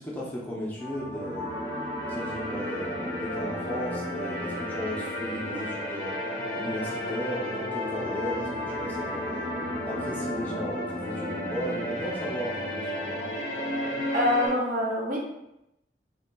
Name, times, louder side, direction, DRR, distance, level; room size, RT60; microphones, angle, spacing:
voice 1, 0.0-1.6 2.1-6.1 6.6-9.5 9.9-12.9, equal, 10° left, -5 dB, 0.5 m, -35 dB
sound 1, 0.8-14.5, equal, 40° left, 0.8 m, -32 dB
voice 2, 14.1-15.2, left 1 dB, 45° right, -1 dB, 0.6 m, -25 dB
2.6 x 2.2 x 3.8 m, 0.87 s
head